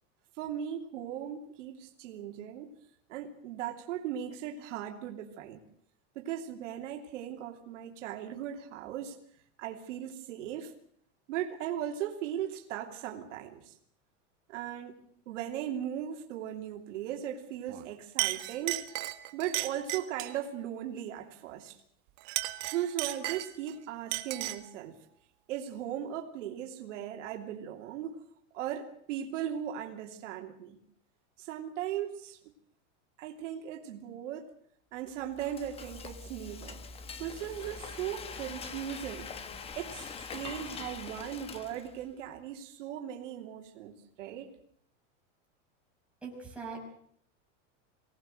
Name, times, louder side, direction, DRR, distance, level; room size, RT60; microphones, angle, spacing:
voice 1, 0.4-2.7 3.1-5.6 6.1-9.2 9.6-10.7 11.3-13.7 14.5-15.0 15.3-18.8 19.3-21.8 22.7-24.9 25.5-28.2 28.5-30.8 31.4-32.5 33.2-34.5 34.9-36.8 37.2-39.3 39.7-44.5, right 10 dB, 75° right, 3 dB, 3.0 m, -38 dB
Chink clink, 17.7-17.9 18.2-20.4 22.2-23.7 24.1-24.7, right 19 dB, 45° right, 1.6 m, -35 dB
Frying (food), 35.1-42.1, left 5 dB, 15° left, 1.1 m, -44 dB
voice 2, 46.2-46.9, right 4 dB, 5° right, -3 dB, 6.5 m, -41 dB
24.0 x 18.5 x 7.9 m, 0.64 s
supercardioid pair, 165°, 37 cm